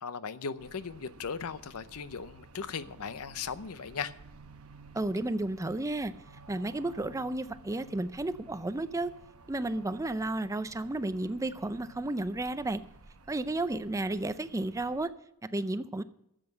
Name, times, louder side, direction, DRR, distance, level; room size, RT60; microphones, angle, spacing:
voice 1, 0.0-4.1, left 6 dB, 75° left, 0.7 m, -38 dB
sound 1, 0.6-15.0, right 3 dB, 70° right, 0.9 m, -54 dB
voice 2, 4.9-6.1 6.5-9.1 9.5-12.8 13.3-15.1 15.5-16.0, right 2 dB, 15° right, 0.5 m, -32 dB
12.0 x 7.7 x 6.6 m
head